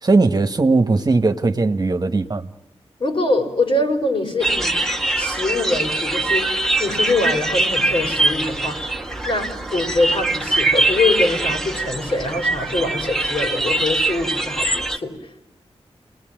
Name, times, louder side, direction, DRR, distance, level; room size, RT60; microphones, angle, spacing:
voice 1, 0.0-2.5, right 3 dB, 40° right, 8 dB, 1.4 m, -18 dB
voice 2, 3.0-4.8 5.2-6.5 6.8-8.9 9.2-15.1, left 2 dB, 55° left, 5 dB, 4.7 m, -23 dB
sound 1, 4.4-15.0, right 2 dB, 5° left, 1.9 m, -22 dB
29.0 x 20.0 x 9.1 m, 0.93 s
wide cardioid pair, 75°, 11 cm